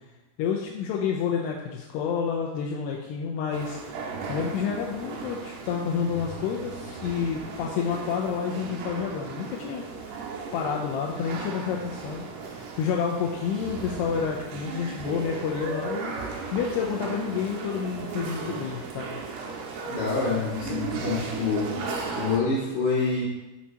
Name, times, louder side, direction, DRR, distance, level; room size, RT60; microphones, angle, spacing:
voice 1, 0.4-3.8 4.3-10.3 10.5-19.2, left 6 dB, 85° left, -1 dB, 2.9 m, -29 dB
sound 1, 3.5-22.4, right 4 dB, 85° right, 3.2 m, -36 dB
voice 2, 19.9-21.8 22.1-23.2, left 4 dB, 65° left, -10 dB, 4.0 m, -26 dB
10.0 x 7.3 x 2.9 m, 1.1 s
omnidirectional pair, 4.7 m